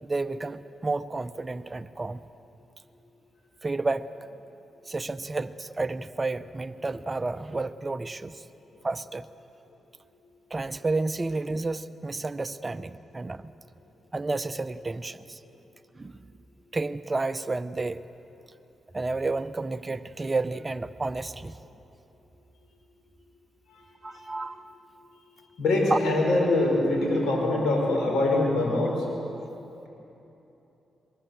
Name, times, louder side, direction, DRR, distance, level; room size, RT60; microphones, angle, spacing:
voice 1, 0.0-2.2 3.6-4.1 4.9-8.4 8.8-9.3 10.5-13.5 14.1-15.4 16.0-16.1 16.7-18.0 18.9-21.6 24.0-24.6 25.9-26.0, right 3 dB, 25° right, 11 dB, 0.8 m, -31 dB
voice 2, 23.7-24.2 25.6-29.0, left 2 dB, 90° left, -1 dB, 5.8 m, -24 dB
23.0 x 23.0 x 7.4 m, 2.9 s
cardioid pair, 75°, 0 cm